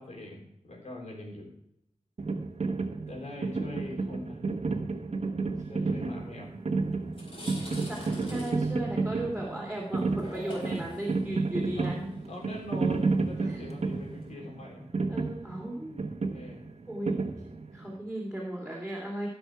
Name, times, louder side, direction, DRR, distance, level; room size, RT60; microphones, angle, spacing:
voice 1, 0.0-1.5 3.1-4.4 5.6-6.5 11.8-14.9 16.3-16.7, left 1 dB, 90° left, -1 dB, 3.6 m, -42 dB
sound 1, 2.2-17.9, right 3 dB, 70° right, 1.2 m, -32 dB
voice 2, 5.4-5.9 7.6-11.9 13.5-13.6 15.1-16.1 16.9-17.2 17.7-19.3, right 1 dB, 5° right, -4 dB, 2.9 m, -36 dB
sound 2, 6.5-6.6 7.0-14.3, left 1 dB, 55° left, 4.4 m, -46 dB
16.0 x 6.1 x 4.7 m, 0.80 s
wide cardioid pair, 70°, 11 cm